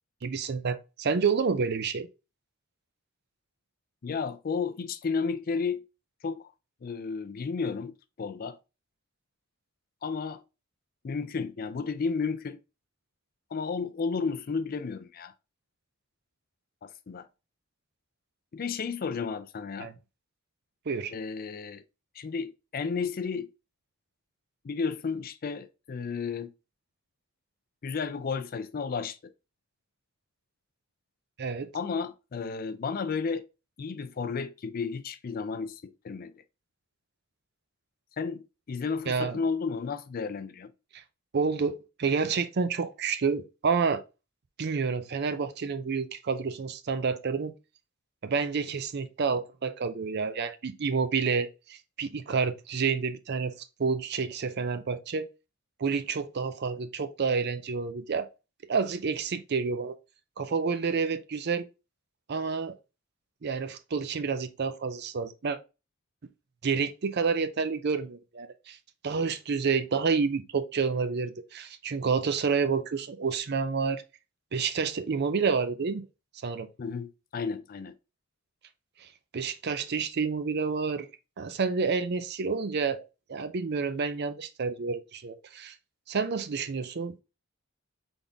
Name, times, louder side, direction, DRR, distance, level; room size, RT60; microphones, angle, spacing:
voice 1, 0.2-2.1 19.8-19.9 20.9-21.1 31.4-31.7 39.1-39.4 40.9-41.0 41.3-44.0 44.6-47.5 48.2-53.5 53.8-55.3 55.8-58.3 58.7-60.0 60.4-61.7 62.3-62.8 63.4-65.6 66.6-68.8 69.0-74.0 74.5-76.0 76.4-76.7 79.0-79.1 79.3-81.1 81.4-85.7 86.1-87.2, right 5 dB, 55° right, 0.5 m, -29 dB
voice 2, 4.0-5.8 6.2-6.5 6.8-8.6 10.0-10.4 11.0-12.6 13.5-15.3 16.8-17.2 18.5-19.9 21.1-21.8 22.2-23.5 24.6-26.5 27.8-29.2 31.7-33.4 33.8-36.3 38.2-40.7 76.8-77.9, left 5 dB, 45° left, 0.4 m, -32 dB
4.0 x 3.5 x 3.5 m
head